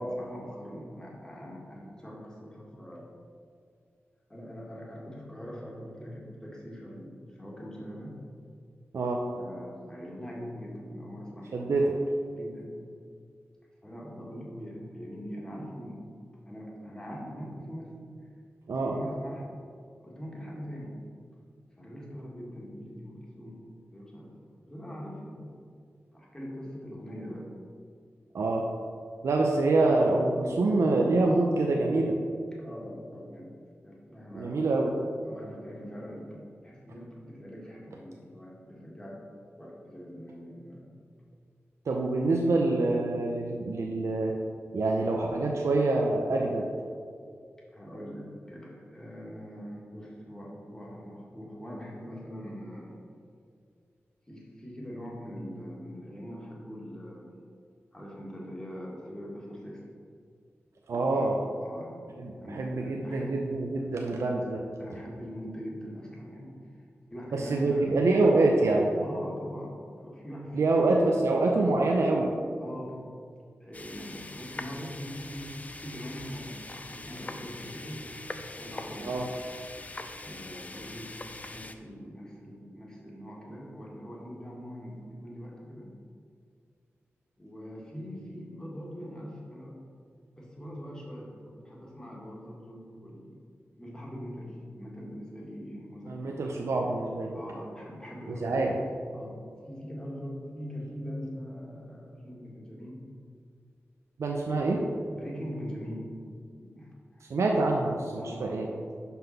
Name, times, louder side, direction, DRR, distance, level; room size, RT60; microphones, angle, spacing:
voice 1, 0.0-3.1 4.3-8.2 9.4-11.5 12.3-12.7 13.8-16.0 16.5-18.2 18.7-19.5 20.0-21.0 21.8-24.3 24.7-25.5 26.1-27.5 29.1-29.2 32.6-33.5 33.8-34.7 35.3-39.2 39.6-41.0 47.7-53.0 54.3-57.3 57.9-59.8 60.9-63.6 64.8-66.6 67.1-67.9 69.0-71.0 72.6-73.0 73.6-78.1 78.6-79.2 80.2-81.2 81.5-85.9 87.4-89.7 90.4-93.4 93.8-96.2 97.3-98.7 99.1-99.4 99.7-103.0 104.4-104.7 105.1-106.1 106.5-107.2 108.2-108.7, equal, 15° left, -4 dB, 2.0 m, -42 dB
voice 2, 11.5-11.9 18.7-19.0 28.3-28.6 29.2-32.2 34.3-35.0 41.9-44.3 44.7-46.7 60.9-61.4 62.2-64.6 67.3-68.9 70.5-72.3 79.0-79.3 96.1-97.4 98.3-98.7 104.2-104.8 107.3-108.7, right 2 dB, 85° right, 0 dB, 0.7 m, -26 dB
sound 1, 73.7-81.8, left 2 dB, 30° left, 0.5 m, -42 dB
5.8 x 5.7 x 5.7 m, 2.2 s
wide cardioid pair, 85°, 5 cm